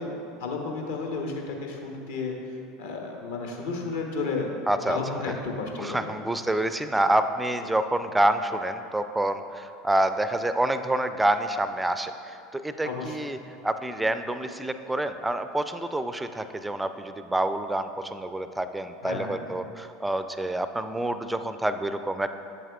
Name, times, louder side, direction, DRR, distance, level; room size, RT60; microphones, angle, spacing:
voice 1, 0.0-6.1 12.8-13.3 19.0-19.4, left 3 dB, 65° left, 1 dB, 1.0 m, -33 dB
voice 2, 4.7-5.0 5.8-13.4 13.6-22.4, right 1 dB, 10° right, 10 dB, 0.3 m, -27 dB
7.9 x 7.4 x 2.4 m, 2.7 s
figure-of-eight pair, 75°, 0 cm